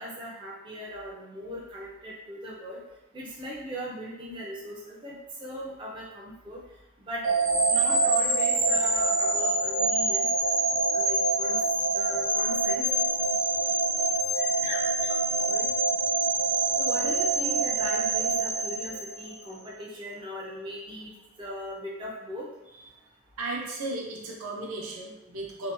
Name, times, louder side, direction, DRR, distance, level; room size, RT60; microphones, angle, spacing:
voice 1, 0.0-2.8 3.1-6.6 7.1-7.2 7.7-10.3 10.9-11.6 11.9-12.9 14.3-15.2 15.5-15.7 16.8-21.1 21.4-22.4, equal, 20° right, -5 dB, 0.3 m, -39 dB
sound 1, 7.2-19.4, right 3 dB, 65° right, 1.0 m, -25 dB
voice 2, 23.4-25.7, right 2 dB, 80° right, -2 dB, 0.6 m, -35 dB
2.6 x 2.1 x 2.5 m, 0.99 s
head